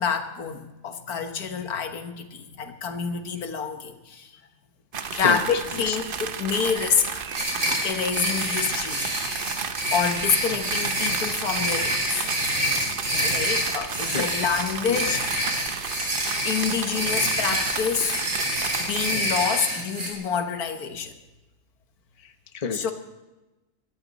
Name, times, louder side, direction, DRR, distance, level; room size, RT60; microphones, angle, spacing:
voice 1, 0.0-4.3 5.1-7.2 7.8-9.1 9.9-12.3 13.2-15.2 16.4-18.2 18.8-21.1 22.7-22.9, left 6 dB, 80° left, 7 dB, 1.7 m, -27 dB
sound 1, 4.9-19.1, right 6 dB, 45° right, 0.8 m, -33 dB
sound 2, 7.3-20.1, right 1 dB, 70° right, 3.9 m, -27 dB
voice 2, 12.9-13.2 14.1-14.3 14.9-15.2 18.1-18.6 22.2-22.8, left 6 dB, 30° left, 8 dB, 0.9 m, -31 dB
22.0 x 13.5 x 4.1 m, 1.1 s
omnidirectional pair, 1.6 m